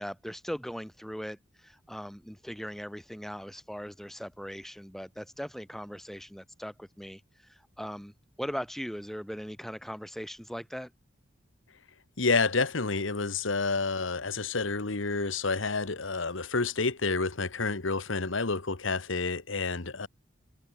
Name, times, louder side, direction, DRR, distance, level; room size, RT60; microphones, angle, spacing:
voice 1, 0.0-8.1 8.4-10.9, equal, ahead, 2.7 m, -39 dB
voice 2, 12.2-20.1, left 4 dB, 75° left, 1.5 m, -29 dB
head